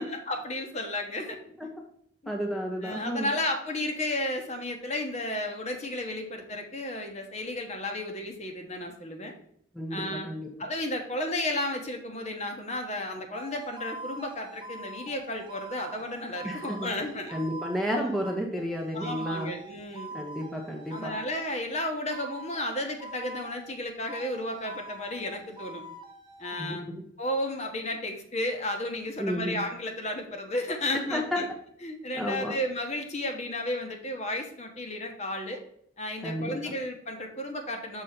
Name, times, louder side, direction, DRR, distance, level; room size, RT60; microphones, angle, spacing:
voice 1, 0.0-1.4 2.2-2.3 2.8-9.3 9.9-10.3 10.6-17.4 17.9-18.1 18.9-20.1 20.9-25.8 26.4-26.9 27.2-31.4 31.8-35.6 36.0-38.0, left 1 dB, 35° left, 3 dB, 1.2 m, -33 dB
voice 2, 2.3-3.3 9.7-10.5 16.4-16.9 17.3-19.5 20.1-21.1 26.6-27.0 29.2-29.6 30.9-31.4 32.1-32.5 36.2-36.5, equal, ahead, -1 dB, 0.9 m, -32 dB
sound 1, 13.3-21.6 22.1-23.8 24.1-26.7, right 2 dB, 25° right, 0.6 m, -44 dB
6.6 x 4.1 x 5.9 m, 0.67 s
head